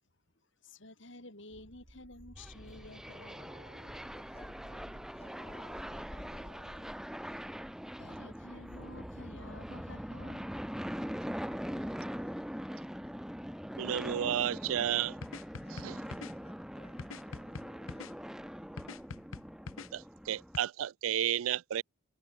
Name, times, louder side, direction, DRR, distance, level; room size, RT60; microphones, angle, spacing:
voice 1, 0.6-3.7 8.0-10.5, left 2 dB, 60° left, 6.4 m, -51 dB
sound 1, 1.5-5.7 6.2-7.1 7.8-11.9 14.2-14.7, right 1 dB, 50° right, 3.7 m, -56 dB
sound 2, 2.4-20.6, equal, ahead, 1.4 m, -42 dB
voice 2, 3.9-7.4 10.9-12.9 15.6-18.9, left 1 dB, 30° left, 6.1 m, -61 dB
voice 3, 13.8-15.2 15.7-16.0 19.9-21.8, right 10 dB, 80° right, 0.4 m, -32 dB
sound 3, 15.2-16.3 17.0-18.1 18.8-19.9 20.5-20.6, left 4 dB, 80° left, 0.7 m, -44 dB
head